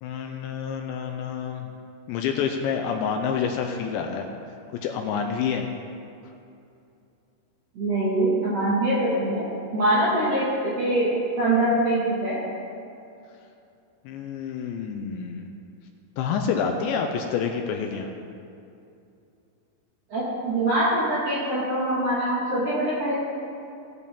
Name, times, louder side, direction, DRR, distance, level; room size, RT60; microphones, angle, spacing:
voice 1, 0.0-1.7 2.1-4.3 4.8-5.7 14.1-15.5 16.2-18.1, left 6 dB, 85° left, 3 dB, 2.6 m, -28 dB
voice 2, 7.7-9.5 9.7-11.1 11.4-12.4 20.1-23.1, right 1 dB, 70° right, -8 dB, 1.5 m, -23 dB
18.0 x 8.3 x 3.6 m, 2.6 s
omnidirectional pair, 5.8 m